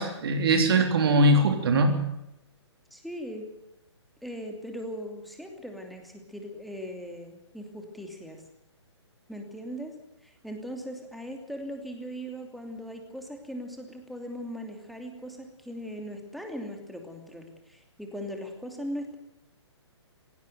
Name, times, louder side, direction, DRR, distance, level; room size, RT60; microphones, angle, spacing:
voice 1, 0.0-2.0, right 1 dB, 55° right, 5 dB, 3.4 m, -21 dB
voice 2, 2.9-3.5 4.2-8.4 9.3-9.9 10.2-19.2, equal, ahead, 3 dB, 2.9 m, -39 dB
17.0 x 16.5 x 9.1 m, 0.87 s
figure-of-eight pair, 135°, 15 cm